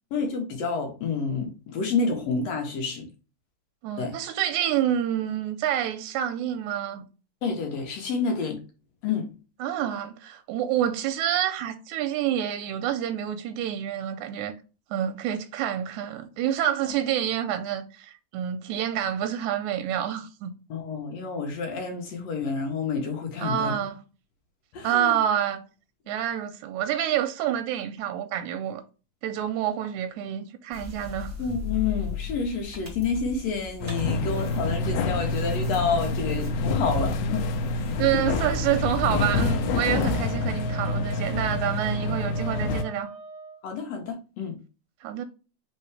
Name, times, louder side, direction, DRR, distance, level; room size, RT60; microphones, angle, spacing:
voice 1, 0.1-3.1 4.0-4.2 7.4-8.6 9.0-9.3 20.7-23.8 24.7-25.2 31.4-37.5 43.6-44.6, left 5 dB, 70° left, 1.8 m, -29 dB
voice 2, 3.8-7.1 9.6-14.5 14.9-20.5 23.4-24.0 24.8-25.6 26.1-28.8 29.2-31.3 38.0-43.1 45.0-45.2, right 10 dB, 80° right, 1.9 m, -28 dB
sound 1, 30.7-40.1, left 3 dB, 5° right, 1.4 m, -37 dB
sound 2, 33.8-42.8, left 3 dB, 85° left, 2.0 m, -27 dB
Wind instrument woodwind instrument, 39.2-43.6, right 1 dB, 60° right, 0.7 m, -41 dB
4.3 x 3.7 x 3.2 m
omnidirectional pair, 3.6 m